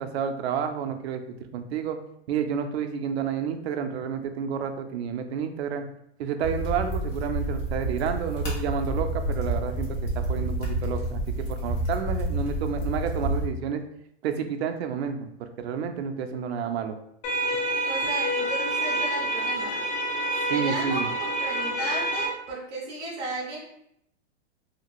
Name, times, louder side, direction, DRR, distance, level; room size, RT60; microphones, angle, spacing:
voice 1, 0.0-2.0 2.3-5.9 6.2-13.8 14.2-17.0 20.5-21.1, right 7 dB, 65° right, 7 dB, 0.5 m, -30 dB
sound 1, 6.4-13.5, right 1 dB, 45° left, 1.2 m, -29 dB
sound 2, 17.2-22.3, right 1 dB, 85° left, 1.1 m, -27 dB
voice 2, 17.9-19.8 20.5-23.6, right 2 dB, 15° right, -6 dB, 0.4 m, -34 dB
2.8 x 2.4 x 2.9 m, 0.75 s
supercardioid pair, 155°, 34 cm